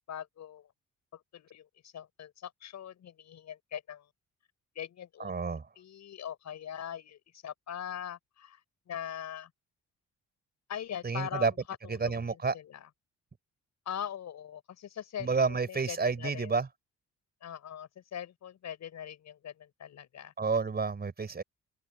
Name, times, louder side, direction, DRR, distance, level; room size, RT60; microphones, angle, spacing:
voice 1, 0.1-0.7 1.1-4.1 4.7-8.6 8.9-9.5 10.7-11.5 11.8-12.9 13.9-16.5 17.4-20.3, left 9 dB, 65° left, 5.9 m, -42 dB
voice 2, 5.2-5.7 11.0-11.5 11.9-12.5 15.2-16.7 20.4-21.4, right 4 dB, 30° right, 4.9 m, -30 dB
cardioid pair, 90°, 30 cm